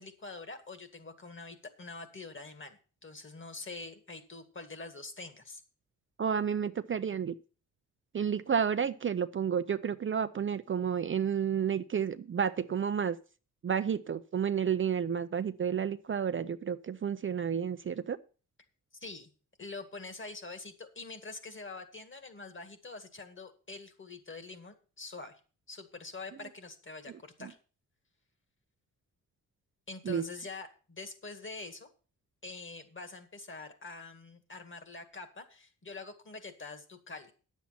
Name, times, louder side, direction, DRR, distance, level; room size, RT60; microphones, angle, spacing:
voice 1, 0.0-5.6 18.9-19.3 19.6-25.4 25.7-27.6 29.9-31.9 32.4-37.3, left 3 dB, 35° left, 1.9 m, -45 dB
voice 2, 6.2-7.3 8.1-13.2 13.6-18.2 27.4-27.5 30.1-30.2, right 7 dB, 40° right, 0.5 m, -31 dB
10.0 x 7.4 x 5.7 m
cardioid pair, 90°, 33 cm